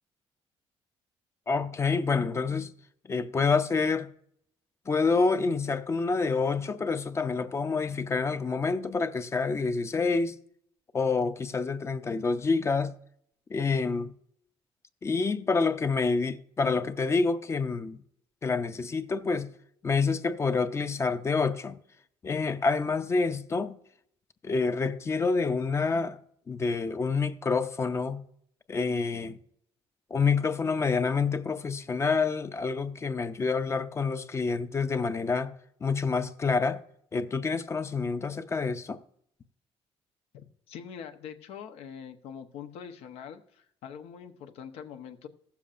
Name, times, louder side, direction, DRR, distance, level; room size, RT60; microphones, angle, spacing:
voice 1, 1.5-2.7 3.1-4.1 4.9-10.4 10.9-12.9 13.5-14.1 15.0-18.0 18.4-19.5 19.8-21.8 22.2-23.8 24.4-26.2 26.5-28.2 28.7-29.4 30.1-35.5 35.8-36.8 37.1-39.0, left 4 dB, 25° left, 0.5 m, -27 dB
voice 2, 40.3-45.3, left 7 dB, 85° left, 0.8 m, -44 dB
15.5 x 7.1 x 2.5 m
cardioid pair, 125°, 10 cm